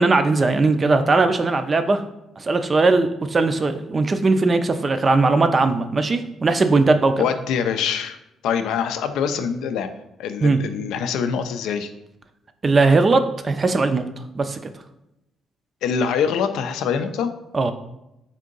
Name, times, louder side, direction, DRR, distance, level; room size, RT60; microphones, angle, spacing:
voice 1, 0.0-2.0 2.4-7.1 10.4-10.6 12.6-14.0 14.3-14.6 17.5-17.7, right 3 dB, 35° right, 9 dB, 0.4 m, -19 dB
voice 2, 7.2-8.2 8.4-9.9 10.2-11.9 15.8-17.3, left 7 dB, 85° left, 9 dB, 0.3 m, -24 dB
3.6 x 2.7 x 3.8 m, 0.89 s
cardioid pair, 90°, 0 cm